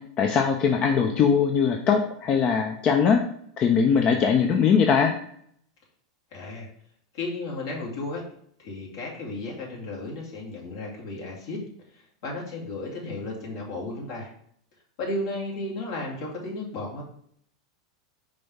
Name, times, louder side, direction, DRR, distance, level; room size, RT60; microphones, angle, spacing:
voice 1, 0.0-3.2 3.6-5.1, left 6 dB, 40° left, 4 dB, 0.6 m, -21 dB
voice 2, 6.3-6.7 7.1-8.2 8.6-11.6 11.9-14.3 15.0-17.0, left 2 dB, 65° left, -3 dB, 2.5 m, -34 dB
5.1 x 3.4 x 5.4 m, 0.66 s
hypercardioid pair, 100°, 2 cm